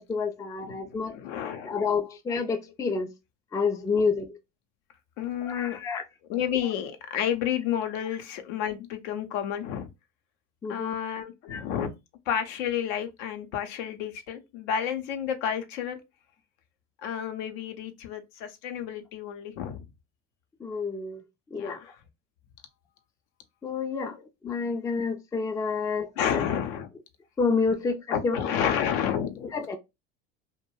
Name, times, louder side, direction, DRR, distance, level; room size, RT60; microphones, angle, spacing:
voice 1, 0.0-1.2 1.6-3.1 3.5-4.4 5.5-6.0 10.6-10.9 11.5-11.6 20.6-21.2 21.5-21.8 23.6-24.2 24.4-26.4 27.4-28.7 29.4-29.8, left 4 dB, 10° left, 0.3 m, -29 dB
voice 2, 0.6-1.8 5.2-5.8 6.3-9.9 10.7-11.9 12.3-16.0 17.0-19.8 21.6-21.9 26.2-26.9 28.1-29.5, left 9 dB, 75° left, 0.7 m, -30 dB
2.2 x 2.1 x 3.1 m
hypercardioid pair, 75°, 36 cm